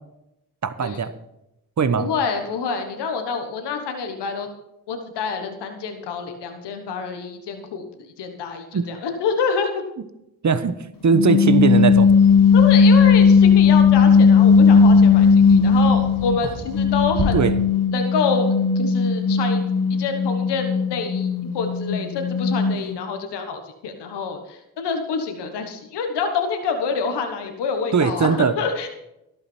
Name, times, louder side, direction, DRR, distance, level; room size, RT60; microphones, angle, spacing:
voice 1, 0.6-1.1 1.8-2.1 8.7-8.9 10.4-10.8 11.0-12.1 17.3-17.6 27.9-28.6, right 5 dB, 45° right, 13 dB, 1.1 m, -19 dB
voice 2, 2.0-4.5 4.9-7.8 8.2-9.8 12.5-17.4 17.9-18.5 18.7-28.9, left 5 dB, 90° left, 6 dB, 1.4 m, -27 dB
sound 1, 11.1-16.4 16.7-23.0, left 5 dB, 55° left, 1.1 m, -16 dB
Bird vocalization bird call bird song, 11.5-17.2, right 2 dB, 75° right, 3.6 m, -36 dB
13.5 x 11.5 x 4.4 m, 0.88 s
supercardioid pair, 40°, 40 cm